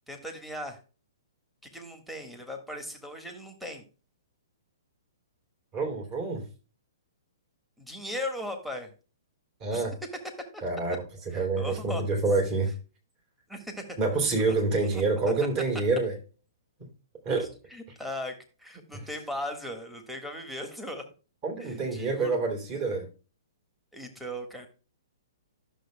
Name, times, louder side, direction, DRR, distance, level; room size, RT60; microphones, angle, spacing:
voice 1, 0.1-0.8 1.7-3.8 7.8-8.9 9.7-9.8 10.5-10.6 11.3-12.0 13.5-14.2 14.9-15.3 17.7-21.1 21.6-22.4 23.9-24.7, left 1 dB, ahead, 1.5 m, -38 dB
voice 2, 5.7-6.5 9.6-10.0 10.6-12.7 14.0-16.2 16.8-16.9 17.2-17.6 18.9-19.0 21.4-23.1, right 3 dB, 35° right, 2.9 m, -27 dB
11.5 x 6.6 x 2.2 m
hypercardioid pair, 130°, 2 cm